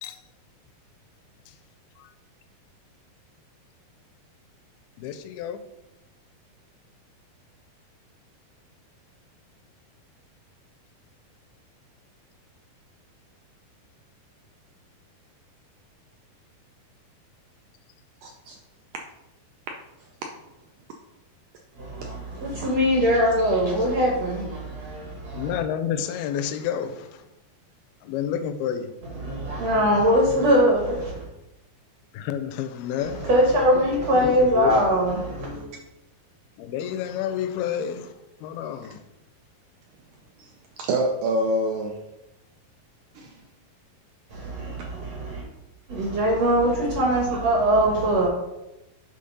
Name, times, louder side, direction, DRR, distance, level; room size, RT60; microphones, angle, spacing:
voice 1, 5.0-5.6 25.4-27.2 28.0-28.9 32.1-33.3 34.2-34.8 36.6-38.1 38.4-39.0, left 9 dB, 85° left, 2.4 m, -30 dB
voice 2, 18.2-18.6 20.2-20.3 22.0-22.1 40.4-41.9 43.2-43.4, right 1 dB, 80° right, 1.8 m, -27 dB
voice 3, 21.8-25.5 29.2-31.2 33.1-35.7 44.3-45.4 45.9-48.3, equal, 65° right, 1.7 m, -22 dB
7.8 x 3.8 x 5.4 m
omnidirectional pair, 4.4 m